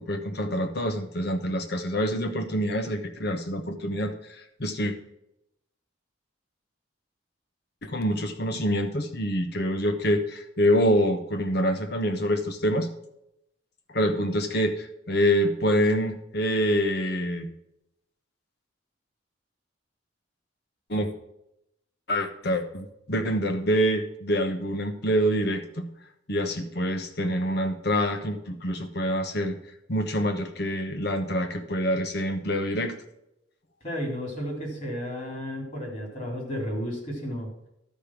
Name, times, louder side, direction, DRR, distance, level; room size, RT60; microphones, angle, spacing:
voice 1, 0.0-4.9 7.8-12.9 13.9-17.5 20.9-21.1 22.1-25.9 26.3-29.6 29.9-32.9, equal, 55° left, 7 dB, 1.1 m, -26 dB
voice 2, 33.8-37.5, equal, 40° left, 0 dB, 3.4 m, -33 dB
11.5 x 5.2 x 6.0 m, 0.82 s
head